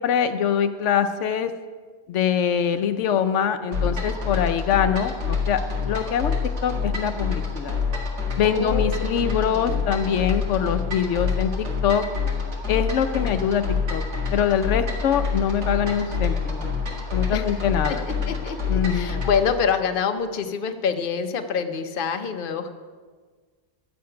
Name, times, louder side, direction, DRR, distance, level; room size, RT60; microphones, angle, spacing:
voice 1, 0.0-1.5 2.1-5.6 5.9-6.3 6.6-7.7 8.4-12.0 12.7-14.0 14.3-16.7 17.1-18.0 18.7-19.1, left 8 dB, 80° left, 9 dB, 0.9 m, -23 dB
sound 1, 3.7-19.6, left 5 dB, 70° right, 2.2 m, -27 dB
voice 2, 8.4-9.8 17.3-17.5 18.3-18.6 18.9-22.8, left 6 dB, 50° left, 7 dB, 0.9 m, -26 dB
12.0 x 8.4 x 5.7 m, 1.5 s
omnidirectional pair, 1.2 m